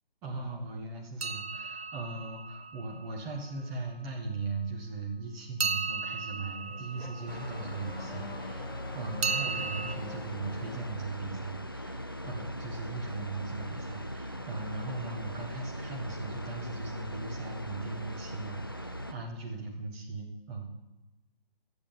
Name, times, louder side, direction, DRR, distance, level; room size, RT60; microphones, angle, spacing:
voice 1, 0.2-8.7 8.9-20.7, right 3 dB, 10° right, -1 dB, 1.3 m, -38 dB
sound 1, 1.2-3.3 5.6-8.0 9.2-10.0, right 4 dB, 85° right, 0.8 m, -35 dB
Car / Accelerating revving vroom, 6.2-11.3, left 5 dB, 75° left, 0.7 m, -48 dB
sound 2, 7.3-19.1, equal, 25° left, 0.3 m, -40 dB
12.0 x 7.9 x 7.1 m, 1.0 s
figure-of-eight pair, 150°, 30 cm